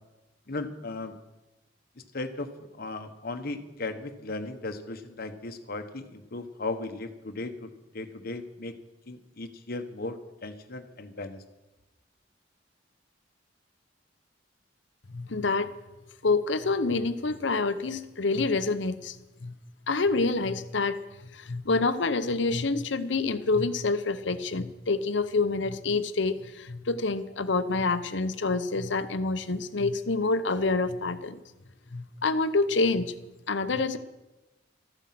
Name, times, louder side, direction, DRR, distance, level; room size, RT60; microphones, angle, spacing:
voice 1, 0.5-1.2 2.1-2.5 2.8-7.7 7.9-8.7 9.1-11.4, left 2 dB, 55° left, 7 dB, 1.2 m, -36 dB
voice 2, 15.1-15.7 16.2-19.5 19.9-21.0 21.3-31.4 31.9-33.1 33.5-34.0, left 3 dB, 70° left, 11 dB, 0.9 m, -27 dB
13.5 x 9.9 x 7.6 m, 1.1 s
head